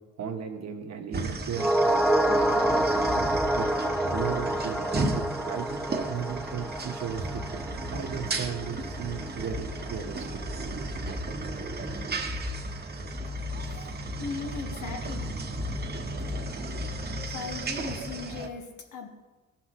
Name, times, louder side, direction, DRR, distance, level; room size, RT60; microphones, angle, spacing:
voice 1, 0.2-3.7 4.1-10.4 10.7-10.9, right 7 dB, 60° right, 4 dB, 1.3 m, -36 dB
sound 1, 1.1-18.5, right 1 dB, 35° right, 1.1 m, -34 dB
sound 2, 1.5-10.0 10.3-10.4, right 1 dB, ahead, 0.5 m, -28 dB
voice 2, 14.2-15.3 17.3-19.1, left 5 dB, 80° left, 3 dB, 1.5 m, -38 dB
15.0 x 5.8 x 3.1 m, 1.2 s
cardioid pair, 90°, 30 cm